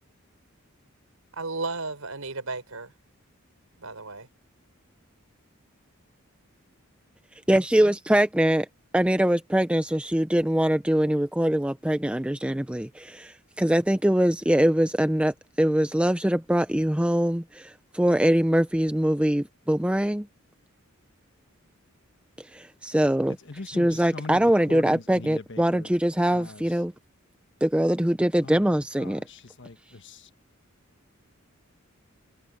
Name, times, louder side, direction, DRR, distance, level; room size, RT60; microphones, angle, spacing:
voice 1, 1.3-2.9 3.8-4.3, right 3 dB, 90° right, 5.0 m, -34 dB
voice 2, 7.5-8.7 8.9-20.3 22.5-23.4 23.7-26.9 27.6-29.2, right 1 dB, 5° right, 0.5 m, -23 dB
voice 3, 23.4-24.4 24.7-25.9 26.3-26.6 28.4-28.7 28.9-30.3, left 3 dB, 60° left, 1.4 m, -41 dB
head